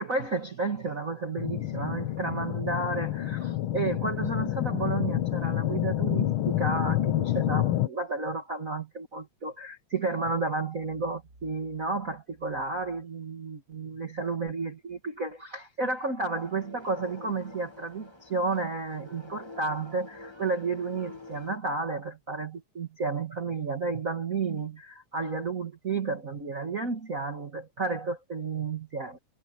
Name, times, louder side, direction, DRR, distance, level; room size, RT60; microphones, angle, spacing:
voice 1, 0.0-29.2, right 3 dB, 30° right, 1.8 m, -32 dB
sound 1, 1.4-7.9, left 13 dB, 90° left, 1.1 m, -28 dB
sound 2, 16.3-21.6, left 3 dB, 15° left, 1.0 m, -47 dB
omnidirectional pair, 3.5 m